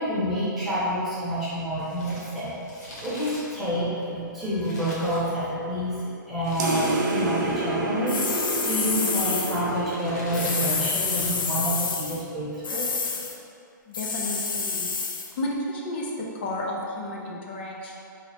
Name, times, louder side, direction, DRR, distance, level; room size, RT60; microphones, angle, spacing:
voice 1, 0.0-12.9, equal, ahead, -13 dB, 0.9 m, -28 dB
Crumpling crinkling, 1.7-5.7 6.4-7.4 7.7-7.8 8.6-9.0 9.6-11.5 11.8-11.9, left 1 dB, 50° left, 1.0 m, -42 dB
sound 1, 6.6-11.5, right 3 dB, 60° right, 0.6 m, -29 dB
sound 2, 8.1-9.6 10.3-12.2 12.6-13.4 13.9-15.3, left 5 dB, 80° left, 0.5 m, -28 dB
voice 2, 13.9-14.9 15.4-17.9, left 1 dB, 30° left, -2 dB, 0.5 m, -32 dB
4.2 x 3.1 x 2.8 m, 2.5 s
hypercardioid pair, 170°, 11 cm